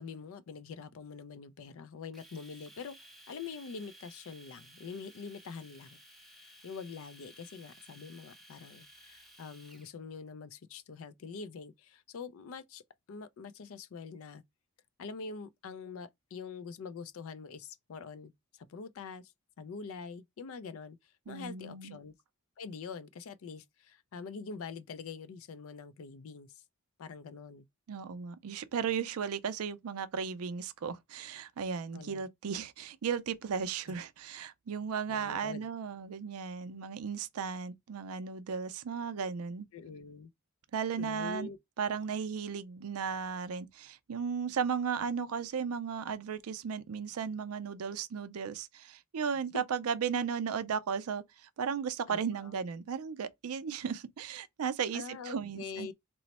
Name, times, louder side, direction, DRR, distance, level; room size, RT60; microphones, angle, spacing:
voice 1, 0.0-6.0 6.6-12.8 13.1-14.4 15.0-19.3 19.6-22.1 22.6-26.6 27.0-27.7 31.9-32.2 33.9-34.0 35.1-35.6 39.7-40.3 41.0-41.6 49.5-49.6 52.1-52.5 54.9-55.9, left 5 dB, 65° left, 0.4 m, -45 dB
Domestic sounds home sounds, 2.1-9.9, equal, ahead, 0.5 m, -56 dB
voice 2, 21.3-22.0 27.9-39.7 40.7-41.5 41.8-55.9, right 6 dB, 75° right, 0.4 m, -35 dB
3.0 x 2.0 x 4.0 m
head